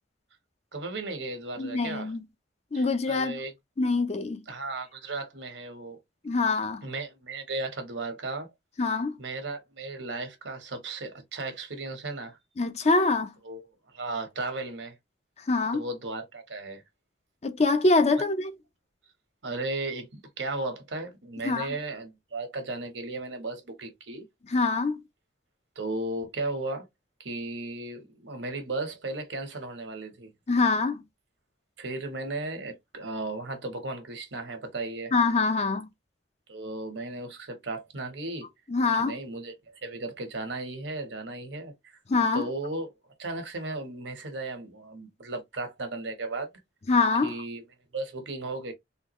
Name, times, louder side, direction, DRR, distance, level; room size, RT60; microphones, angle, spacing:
voice 1, 0.7-2.1 2.7-3.5 4.5-6.0 6.8-8.5 9.2-12.4 13.4-13.7 13.9-15.0 15.7-16.8 19.4-24.3 25.8-26.9 27.2-30.3 31.8-35.1 36.5-38.5 39.0-39.5 39.8-42.0 42.3-42.9 43.2-46.5 47.2-47.7 47.9-48.7, right 2 dB, 85° right, 1.2 m, -35 dB
voice 2, 1.6-2.2 2.7-3.4 3.8-4.4 6.2-6.8 8.8-9.2 12.6-13.3 15.5-15.8 17.4-18.5 21.4-21.7 24.5-25.0 30.5-31.0 35.1-35.9 38.7-39.1 42.1-42.4 46.9-47.3, left 3 dB, 35° left, 0.5 m, -24 dB
3.8 x 2.3 x 3.0 m
head